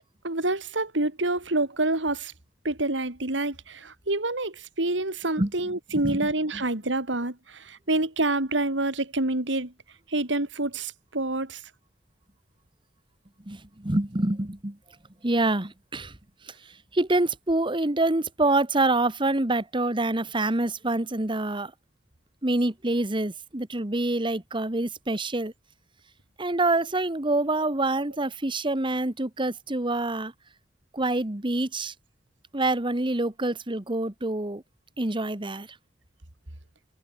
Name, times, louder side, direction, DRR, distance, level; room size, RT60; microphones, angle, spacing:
voice 1, 0.2-2.3 2.6-9.7 10.1-11.6, right 2 dB, 90° right, 3.3 m, -27 dB
voice 2, 13.4-14.8 15.2-16.2 16.9-21.7 22.4-25.5 26.4-30.3 30.9-31.9 32.5-34.6 35.0-35.7, right 2 dB, 25° right, 1.5 m, -26 dB
head